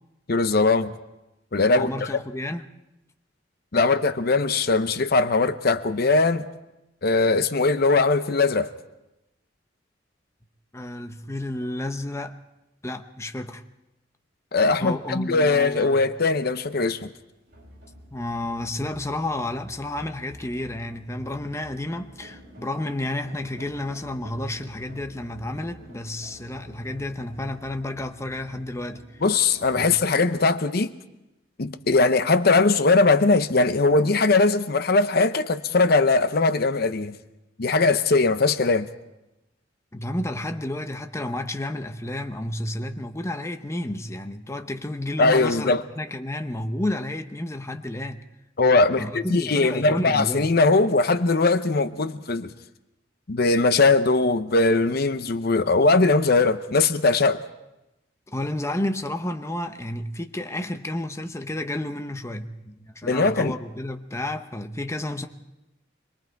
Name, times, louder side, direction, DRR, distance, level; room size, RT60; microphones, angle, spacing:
voice 1, 0.3-0.9 1.5-1.9 3.7-6.4 7.0-8.7 14.5-17.1 29.2-30.9 31.6-37.1 37.6-38.9 45.2-45.8 48.6-52.5 53.3-57.4 63.0-63.5, left 3 dB, 55° left, 0.8 m, -20 dB
voice 2, 1.7-2.6 10.7-12.4 12.8-13.6 14.8-16.0 18.1-29.2 29.7-29.9 39.9-48.2 49.0-50.5 58.3-65.3, left 1 dB, 15° left, 0.8 m, -31 dB
sound 1, 15.7-30.4, equal, 55° right, 7.9 m, -48 dB
26.0 x 21.5 x 4.6 m
head